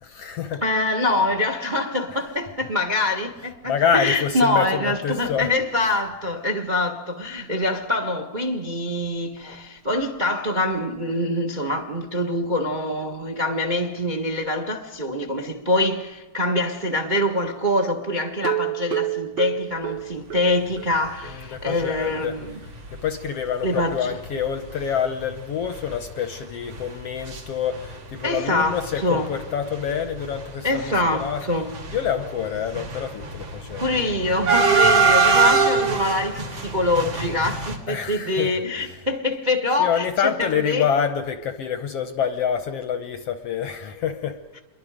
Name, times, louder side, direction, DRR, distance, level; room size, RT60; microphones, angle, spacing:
voice 1, 0.0-0.6 2.1-2.2 3.6-5.5 21.2-22.4 22.9-31.4 31.9-33.8 37.9-38.9 39.8-44.4, left 7 dB, 65° left, 1.6 m, -27 dB
voice 2, 0.6-22.6 23.6-24.2 28.2-29.3 30.6-31.7 33.8-40.9, left 2 dB, 30° right, 0.9 m, -24 dB
sound 1, 18.3-20.9 21.2-21.3 21.7-21.8 22.2-22.3, right 13 dB, 75° right, 1.1 m, -28 dB
sound 2, 21.8-22.0 22.5-22.6 22.8-22.9 23.7-23.8 24.2-24.4 24.7-24.8 25.2-27.4 27.7-28.4 28.7-37.8, right 4 dB, 50° right, 3.7 m, -23 dB
28.0 x 23.0 x 5.1 m
omnidirectional pair, 3.6 m